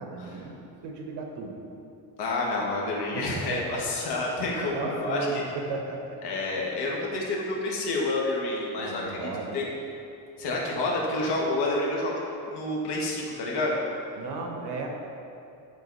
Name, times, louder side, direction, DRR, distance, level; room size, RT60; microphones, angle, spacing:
voice 1, 0.0-1.5 3.1-3.8 4.6-6.2 8.8-9.6 14.2-14.9, right 4 dB, 65° right, 2 dB, 1.1 m, -35 dB
voice 2, 2.2-5.3 6.2-9.6 10.4-12.2 12.5-13.8, left 2 dB, 60° left, -3 dB, 1.6 m, -29 dB
10.5 x 4.0 x 4.1 m, 2.7 s
cardioid pair, 155°, 44 cm